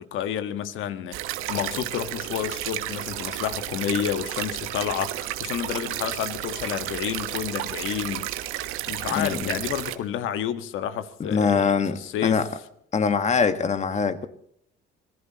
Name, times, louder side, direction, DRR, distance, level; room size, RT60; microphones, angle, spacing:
voice 1, 0.0-8.3 8.9-12.4, left 10 dB, 75° left, 1.5 m, -30 dB
sound 1, 1.1-10.0, right 14 dB, 80° right, 1.2 m, -32 dB
voice 2, 9.1-9.6 11.2-12.5 12.9-14.3, left 5 dB, 35° left, 1.6 m, -23 dB
25.0 x 18.5 x 3.0 m
cardioid pair, 110°, 21 cm